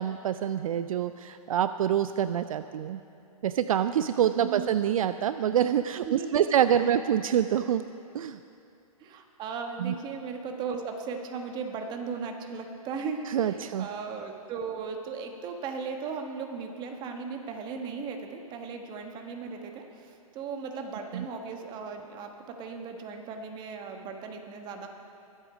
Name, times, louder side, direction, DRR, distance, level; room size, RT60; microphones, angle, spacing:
voice 1, 0.0-3.0 3.4-7.8 8.1-8.4 9.8-9.9 13.3-13.9 21.1-21.2, right 9 dB, 65° right, 11 dB, 0.4 m, -26 dB
voice 2, 4.4-4.8 6.0-6.9 9.0-24.9, right 5 dB, 25° right, 4 dB, 1.2 m, -37 dB
21.5 x 8.2 x 5.1 m, 2.6 s
hypercardioid pair, 140°, 19 cm